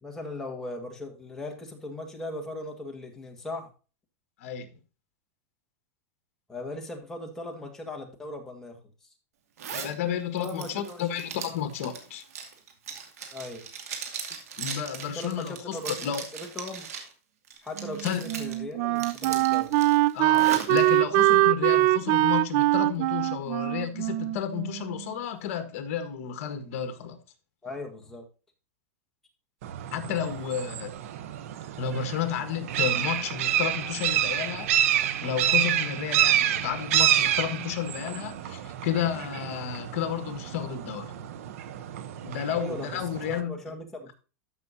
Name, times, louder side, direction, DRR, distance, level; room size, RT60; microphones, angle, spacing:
voice 1, 0.0-3.7 6.5-9.1 10.4-11.1 13.3-13.7 15.1-16.9 17.6-19.8 27.6-28.2 42.5-44.1, left 2 dB, 5° left, 1.7 m, -39 dB
Zipper (clothing), 9.6-9.9 10.4-17.1 17.5-18.5 18.9-20.8, right 7 dB, 85° right, 2.4 m, -38 dB
voice 2, 9.7-12.2 14.6-15.8 16.0-16.2 18.0-18.2 20.1-27.2 29.9-31.0 31.8-34.7 35.2-41.1 42.2-43.5, left 9 dB, 60° left, 1.6 m, -32 dB
Wind instrument woodwind instrument, 17.8-25.1, right 18 dB, 40° right, 0.3 m, -23 dB
sound 1, 29.6-43.4, right 11 dB, 70° right, 0.9 m, -28 dB
13.0 x 5.9 x 2.7 m
supercardioid pair, 150°, 8 cm